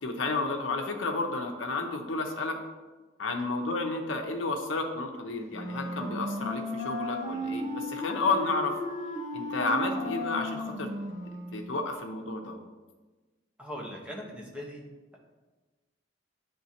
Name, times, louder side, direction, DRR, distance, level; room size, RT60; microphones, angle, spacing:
voice 1, 0.0-2.6 3.2-8.7 9.3-10.9 11.5-12.6, left 3 dB, 80° left, 4 dB, 0.8 m, -31 dB
Wind instrument woodwind instrument, 5.5-11.7, left 1 dB, 40° right, 0.9 m, -35 dB
voice 2, 13.6-14.8, equal, 5° right, -3 dB, 1.0 m, -40 dB
9.6 x 3.6 x 2.8 m, 1.2 s
head